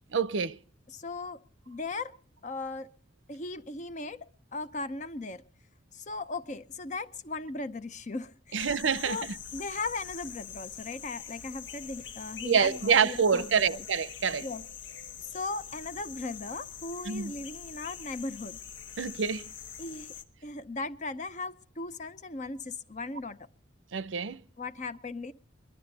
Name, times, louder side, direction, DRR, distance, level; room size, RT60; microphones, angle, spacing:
voice 1, 0.1-0.6 8.5-9.4 12.4-14.5 17.1-17.3 19.0-19.5 23.9-24.4, right 6 dB, 85° right, 0.6 m, -27 dB
voice 2, 0.9-1.4 1.7-2.1 2.4-2.9 3.3-5.4 5.9-8.7 9.0-9.3 9.5-13.9 14.4-14.6 15.2-18.6 19.8-20.1 20.4-23.4 24.6-25.3, left 3 dB, 40° left, 0.6 m, -38 dB
sound 1, 8.6-20.2, left 8 dB, 80° left, 1.1 m, -44 dB
21.5 x 12.0 x 4.1 m
head